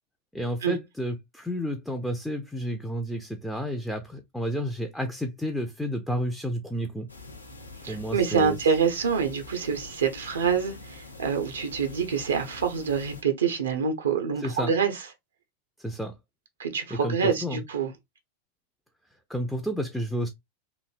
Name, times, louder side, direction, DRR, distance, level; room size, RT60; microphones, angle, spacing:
voice 1, 0.3-7.1 7.9-8.6 14.4-14.7 15.8-16.1 16.9-17.6 19.3-20.3, equal, ahead, 0.4 m, -31 dB
sound 1, 7.1-13.2, left 3 dB, 80° left, 0.6 m, -45 dB
voice 2, 7.8-15.1 16.6-17.9, right 6 dB, 65° right, 0.6 m, -26 dB
3.0 x 2.6 x 2.4 m
figure-of-eight pair, 90°, 0 cm